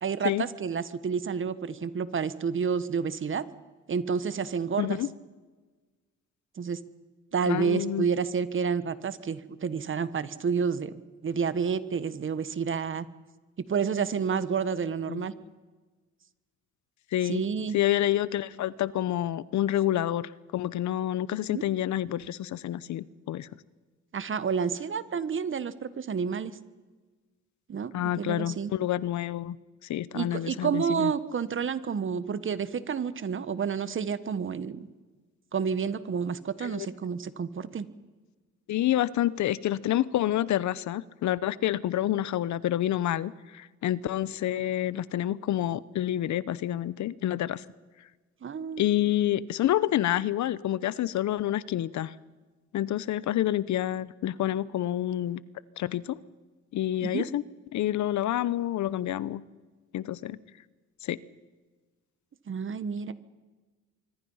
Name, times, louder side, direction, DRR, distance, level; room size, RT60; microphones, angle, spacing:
voice 1, 0.0-3.4 3.9-5.0 6.6-6.8 7.3-13.0 13.7-15.3 17.2-17.7 21.5-21.6 24.1-26.5 27.7-28.7 30.1-34.9 35.5-37.9 48.4-49.1 57.0-57.3 62.5-63.1, right 6 dB, 40° right, 14 dB, 1.4 m, -30 dB
voice 2, 4.8-5.1 7.5-8.1 15.1-15.3 17.1-17.4 17.7-23.5 27.9-29.6 29.9-31.1 36.6-36.9 38.7-47.6 48.8-52.1 52.7-55.4 55.8-56.2 56.7-57.4 57.7-59.4 59.9-60.4 61.0-61.2, left 12 dB, 70° left, 19 dB, 0.8 m, -28 dB
24.5 x 24.5 x 5.7 m, 1.3 s
cardioid pair, 90°, 30 cm